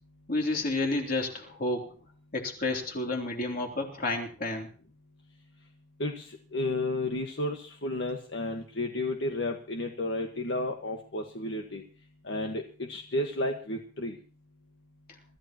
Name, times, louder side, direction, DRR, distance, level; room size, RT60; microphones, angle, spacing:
voice 1, 0.3-1.9 2.3-4.7, left 2 dB, 50° left, 1 dB, 3.3 m, -30 dB
voice 2, 6.0-11.8 12.2-14.2, left 1 dB, 70° left, 2 dB, 1.7 m, -32 dB
25.0 x 14.5 x 3.0 m, 0.39 s
head